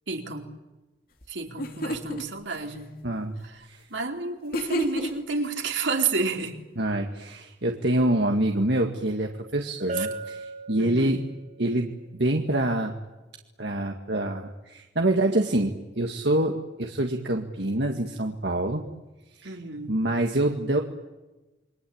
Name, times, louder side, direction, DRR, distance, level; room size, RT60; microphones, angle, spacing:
voice 1, 0.1-0.5 1.3-3.0 3.4-6.6 9.9-10.1 10.8-11.2 19.4-20.0, right 4 dB, 80° right, 2 dB, 4.3 m, -31 dB
sound 1, 1.2-1.3 1.6-2.2 4.5-5.4, equal, 50° left, 3.0 m, -29 dB
voice 2, 3.0-3.3 3.6-3.8 6.8-11.2 11.6-12.9 13.6-18.8 19.4-19.5 19.9-20.8, right 1 dB, 65° right, 2 dB, 2.1 m, -26 dB
Bell, 9.9-11.5, right 2 dB, 40° right, 4.4 m, -35 dB
29.0 x 23.5 x 8.8 m, 1.1 s
head